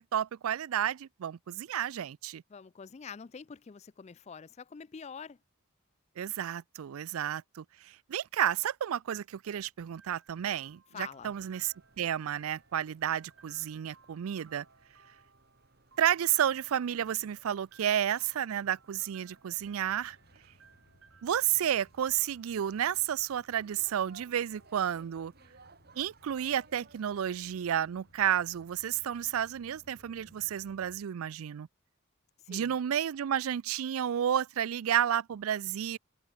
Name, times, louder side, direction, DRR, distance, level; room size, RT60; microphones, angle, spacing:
voice 1, 0.0-2.4 6.2-14.6 16.0-20.2 21.2-25.3 26.0-31.7 32.5-36.0, right 10 dB, 85° right, 0.4 m, -31 dB
voice 2, 2.5-5.4 10.9-11.3 32.4-32.8, left 6 dB, 30° left, 0.4 m, -46 dB
sound 1, 10.0-25.8, right 5 dB, 65° right, 5.6 m, -64 dB
sound 2, 11.1-30.9, right 3 dB, 50° right, 2.1 m, -63 dB
sound 3, 19.6-31.0, left 1 dB, 70° left, 4.4 m, -64 dB
head